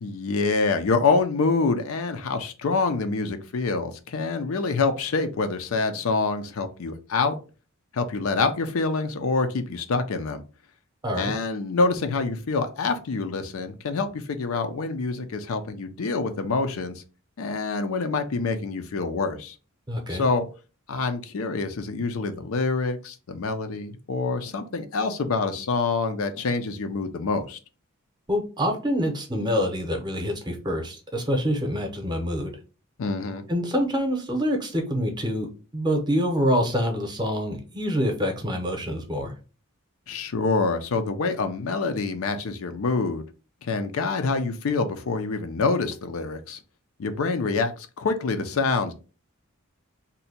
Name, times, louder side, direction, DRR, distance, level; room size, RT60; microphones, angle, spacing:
voice 1, 0.0-7.4 7.9-10.4 11.2-17.0 17.4-19.6 20.1-20.5 20.9-27.6 33.0-33.4 40.1-43.2 43.6-46.6 47.0-48.9, left 4 dB, 70° left, 0.5 m, -26 dB
voice 2, 19.9-20.2 28.3-32.5 33.5-35.5 35.7-39.3, equal, 20° right, 0.7 m, -26 dB
2.7 x 2.2 x 4.1 m
head